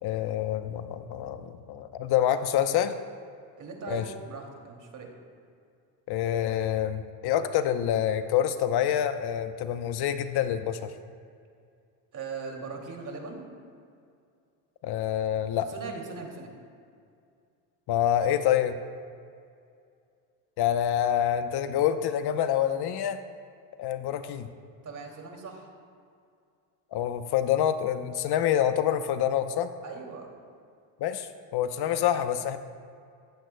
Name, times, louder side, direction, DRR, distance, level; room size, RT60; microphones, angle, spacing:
voice 1, 0.0-2.9 3.9-4.0 6.1-10.9 14.8-15.7 17.9-18.8 20.6-23.2 23.8-24.5 26.9-29.7 31.0-32.6, left 10 dB, 50° left, 10 dB, 0.8 m, -27 dB
voice 2, 3.6-5.1 12.1-13.5 15.7-16.5 24.8-25.7 29.8-30.3, right 4 dB, 40° right, 1 dB, 2.5 m, -39 dB
14.5 x 14.5 x 2.2 m, 2.3 s
supercardioid pair, 90°, 49 cm